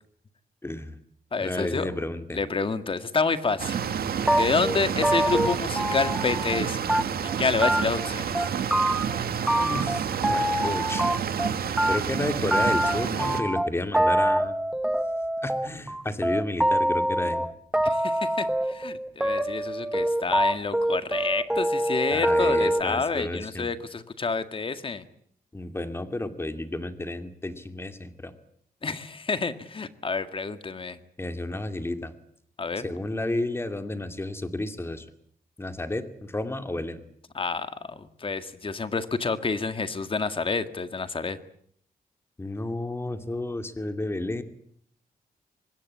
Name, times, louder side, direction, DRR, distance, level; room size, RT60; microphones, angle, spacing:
voice 1, 0.6-1.0 1.4-2.4 9.6-11.1 11.9-14.6 15.4-17.5 22.1-23.7 25.5-28.3 31.2-32.1 32.8-35.1 35.6-37.0 42.4-44.4, left 2 dB, 15° left, 8 dB, 2.5 m, -31 dB
voice 2, 1.3-2.0 2.3-3.8 4.3-6.8 7.2-8.4 17.8-25.0 28.8-31.0 32.6-32.9 37.3-41.4, left 4 dB, 35° left, 10 dB, 1.9 m, -29 dB
sound 1, 3.6-13.4, right 8 dB, 80° right, 2.1 m, -29 dB
sound 2, 4.3-6.6 6.9-7.3 7.6-8.1 8.3-9.2 9.5-11.5 11.8-22.8, right 1 dB, 5° right, 1.1 m, -25 dB
25.5 x 20.5 x 8.6 m, 0.66 s
wide cardioid pair, 120°, 16 cm